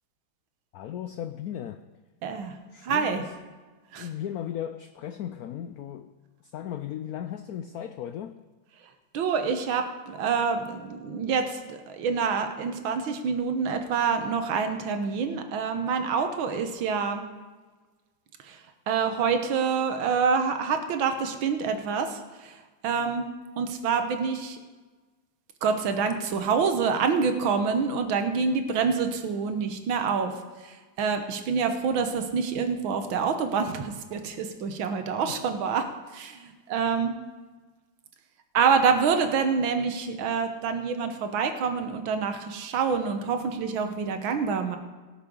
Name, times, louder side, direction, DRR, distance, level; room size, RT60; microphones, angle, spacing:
voice 1, 0.7-1.8 2.7-3.3 4.0-6.1 6.5-8.4 35.3-35.4, left 10 dB, 85° left, 10 dB, 0.8 m, -36 dB
voice 2, 2.2-2.5 2.8-3.2 3.9-4.1 9.1-17.2 18.4-18.6 18.9-22.6 22.8-23.3 23.6-24.6 25.6-30.3 30.6-35.8 36.1-37.1 38.5-44.8, right 5 dB, 80° right, 7 dB, 1.8 m, -27 dB
18.0 x 6.6 x 5.3 m, 1.3 s
omnidirectional pair, 2.1 m